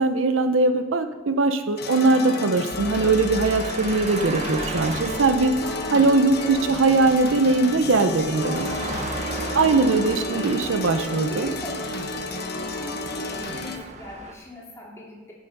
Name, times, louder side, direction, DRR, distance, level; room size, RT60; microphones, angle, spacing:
voice 1, 0.0-5.5 5.9-8.8 9.5-11.5, right 3 dB, 70° right, 9 dB, 0.6 m, -21 dB
sound 1, 1.8-13.8, left 3 dB, 55° left, 1.1 m, -33 dB
sound 2, 2.7-14.3, right 3 dB, 35° right, 0.7 m, -36 dB
sound 3, 5.1-13.7, right 1 dB, 70° left, 2.2 m, -35 dB
voice 2, 9.9-10.5 11.2-12.0 12.6-15.3, left 2 dB, 15° left, -4 dB, 2.9 m, -40 dB
11.0 x 7.2 x 5.4 m, 1.3 s
head